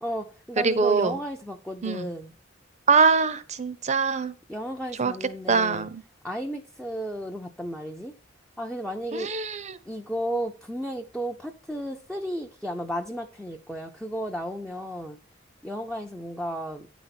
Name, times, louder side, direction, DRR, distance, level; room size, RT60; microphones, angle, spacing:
voice 1, 0.0-2.3 4.5-5.9 6.2-8.1 8.6-9.3 9.9-15.2 15.6-16.9, equal, 5° left, 2 dB, 0.6 m, -33 dB
voice 2, 0.6-1.1 1.8-2.1 2.9-4.3 5.0-5.1 5.5-6.0 9.1-9.6, right 5 dB, 35° right, 14 dB, 0.7 m, -23 dB
9.7 x 4.1 x 5.8 m, 0.35 s
head